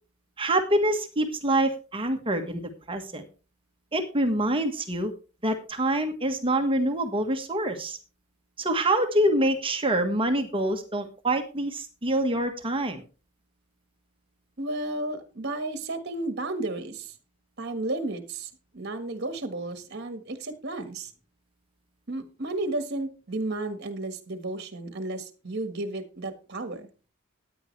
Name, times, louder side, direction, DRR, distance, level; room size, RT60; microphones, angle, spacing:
voice 1, 0.4-2.6 2.9-3.3 3.9-5.1 5.4-8.0 8.6-13.0, right 1 dB, 25° right, 6 dB, 1.4 m, -26 dB
voice 2, 14.6-17.1 17.6-21.1 22.1-26.9, right 2 dB, 55° right, 9 dB, 1.5 m, -33 dB
15.0 x 9.8 x 3.3 m, 0.34 s
head